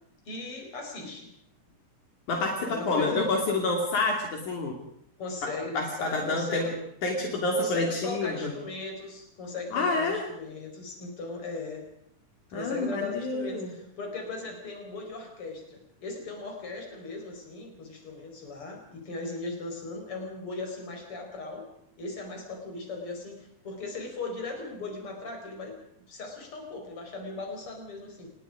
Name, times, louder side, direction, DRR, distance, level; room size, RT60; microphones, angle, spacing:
voice 1, 0.3-1.3 2.7-3.3 5.2-6.8 7.5-11.8 12.5-21.7 22.0-25.8 26.1-28.3, left 3 dB, 45° left, 2 dB, 5.9 m, -38 dB
voice 2, 2.3-4.7 5.7-6.7 7.0-8.5 9.7-10.2 12.5-13.7, left 2 dB, 75° left, 1 dB, 4.3 m, -28 dB
28.0 x 20.0 x 5.1 m, 0.70 s
omnidirectional pair, 3.5 m